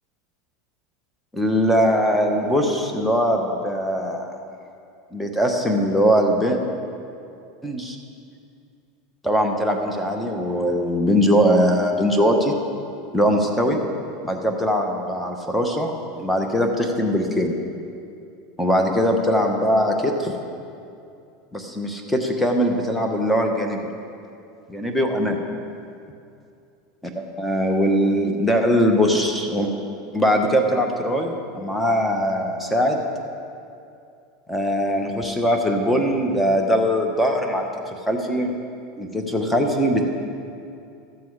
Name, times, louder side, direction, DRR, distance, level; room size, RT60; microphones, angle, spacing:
voice 1, 1.3-4.3 5.1-6.6 7.6-8.0 9.2-12.5 13.1-13.8 14.2-15.9 16.2-17.6 18.6-20.3 21.5-23.8 24.7-25.5 27.4-29.7 30.1-33.0 34.5-38.6 39.0-40.0, equal, 5° left, 2 dB, 1.4 m, -21 dB
13.0 x 7.7 x 4.9 m, 2.6 s
hypercardioid pair, 90°, 0 cm